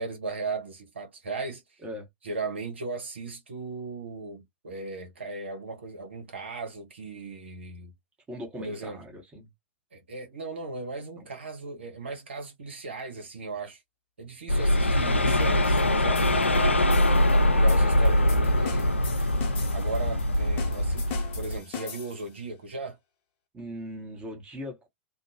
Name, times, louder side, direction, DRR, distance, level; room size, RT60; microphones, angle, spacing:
voice 1, 0.0-1.8 2.2-7.9 8.6-9.0 9.9-13.8 14.2-19.0 19.7-23.0, right 3 dB, 70° right, 1.1 m, -37 dB
voice 2, 8.3-9.5 11.2-11.3 23.5-24.9, equal, 15° right, 1.3 m, -39 dB
sound 1, 14.5-21.6, left 1 dB, 85° left, 0.4 m, -23 dB
sound 2, 15.3-22.4, left 7 dB, 35° left, 0.8 m, -42 dB
2.5 x 2.3 x 2.8 m
figure-of-eight pair, 100°, 6 cm